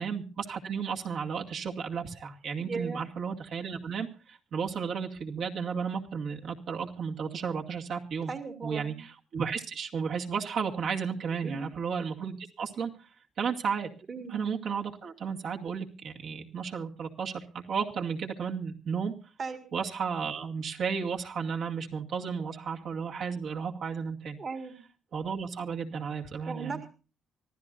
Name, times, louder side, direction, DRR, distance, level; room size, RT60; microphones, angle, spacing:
voice 1, 0.0-8.3 8.6-12.9 13.4-13.9 14.3-19.1 19.7-24.4 25.1-26.8, right 6 dB, 65° right, 0 dB, 2.2 m, -33 dB
voice 2, 2.6-3.0 8.3-9.0 11.4-11.7 14.1-14.3 19.4-19.6 24.4-24.8 26.5-26.9, right 4 dB, 45° right, 8 dB, 1.9 m, -37 dB
25.0 x 15.0 x 2.6 m, 0.35 s
cardioid pair, 90°, 0 cm